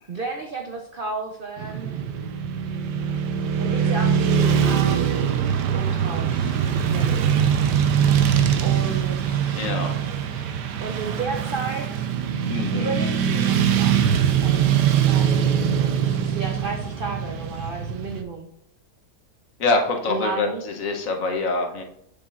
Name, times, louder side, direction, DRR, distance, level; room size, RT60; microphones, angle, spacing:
voice 1, 0.1-2.0 3.6-5.3 5.6-7.3 8.6-9.5 10.8-12.1 12.7-14.0 14.4-14.7 15.1-18.5 20.1-20.6, right 4 dB, 60° right, 2 dB, 0.5 m, -33 dB
Motorcycle / Traffic noise roadway noise, 1.6-18.2, right 8 dB, 85° right, 1.3 m, -22 dB
voice 2, 9.6-10.0 10.3-10.5 12.5-12.9 19.6-21.8, left 3 dB, 60° left, 3 dB, 1.1 m, -25 dB
7.2 x 6.9 x 2.4 m, 0.76 s
omnidirectional pair, 1.8 m